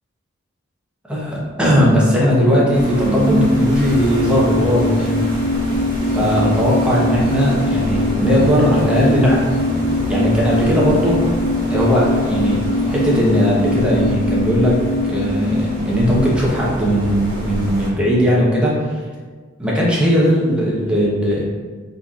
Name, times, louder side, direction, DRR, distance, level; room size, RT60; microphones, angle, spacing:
voice 1, 1.1-5.2 6.1-9.5 10.1-11.2 11.7-12.6 12.9-14.8 15.1-18.7 19.6-21.4, equal, 5° right, -6 dB, 0.8 m, -17 dB
sound 1, 2.3-17.4 17.7-17.8, left 1 dB, 65° left, 1.3 m, -22 dB
sound 2, 2.7-17.9, right 1 dB, 25° right, 1.5 m, -28 dB
4.2 x 3.9 x 2.4 m, 1.5 s
head